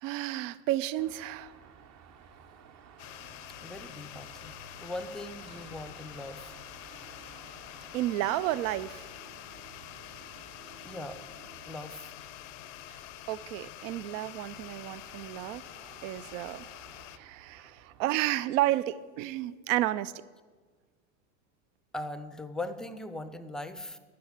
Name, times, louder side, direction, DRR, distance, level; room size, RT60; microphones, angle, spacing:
voice 1, 0.0-1.5 7.9-9.1 12.9-13.0 13.3-15.6 16.0-16.7 17.2-20.1, right 15 dB, 70° right, 17 dB, 0.6 m, -31 dB
Car passing by / Traffic noise roadway noise / Engine, 1.0-18.1, right 7 dB, 40° right, 0.9 m, -54 dB
sound 1, 3.0-17.2, left 15 dB, 70° left, 0.7 m, -47 dB
voice 2, 3.6-6.5 10.8-11.2 11.7-12.1 17.2-17.3 17.6-17.7 21.9-24.0, left 2 dB, ahead, 11 dB, 0.5 m, -40 dB
11.5 x 5.9 x 8.9 m, 1.5 s
supercardioid pair, 120°, 40 cm